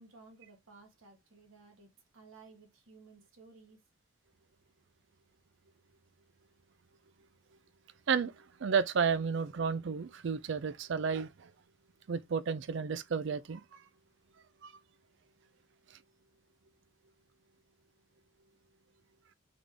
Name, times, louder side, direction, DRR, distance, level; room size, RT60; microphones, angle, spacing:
voice 1, 0.0-3.8, right 3 dB, 75° right, 1.4 m, -57 dB
voice 2, 8.1-11.5 12.1-13.8 14.6-14.7 15.9-16.0, right 6 dB, 60° right, 0.4 m, -32 dB
3.8 x 3.6 x 3.4 m
head